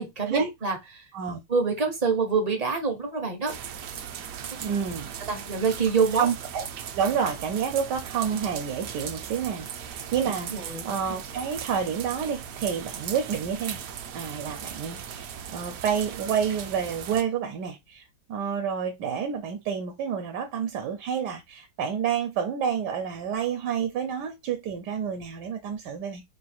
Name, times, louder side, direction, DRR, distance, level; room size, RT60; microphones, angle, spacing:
voice 1, 0.0-1.1 1.5-3.5 4.4-4.7 5.3-6.3 10.5-10.9, right 5 dB, 45° right, 0.5 m, -26 dB
sound 1, 3.5-17.2, right 8 dB, 70° right, 0.9 m, -38 dB
voice 2, 4.6-5.1 6.2-6.6 6.9-13.8 14.1-26.2, right 7 dB, 85° right, 1.2 m, -29 dB
3.1 x 2.4 x 4.1 m
omnidirectional pair, 1.8 m